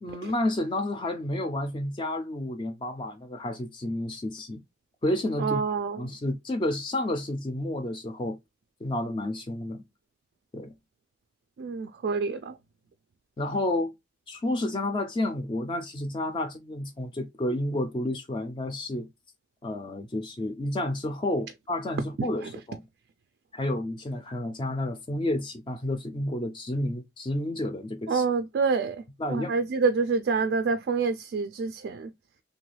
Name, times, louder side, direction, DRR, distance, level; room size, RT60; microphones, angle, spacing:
voice 1, 0.0-4.6 5.0-5.6 6.0-8.4 8.8-9.8 10.5-10.7 13.4-13.9 14.3-19.1 19.6-22.4 22.7-22.8 23.5-28.2 29.2-29.5, left 1 dB, 25° left, 0.3 m, -30 dB
voice 2, 5.4-6.0 11.6-12.6 22.2-22.5 28.1-29.0 29.3-32.1, right 4 dB, 70° right, 0.3 m, -27 dB
3.0 x 2.2 x 3.2 m
head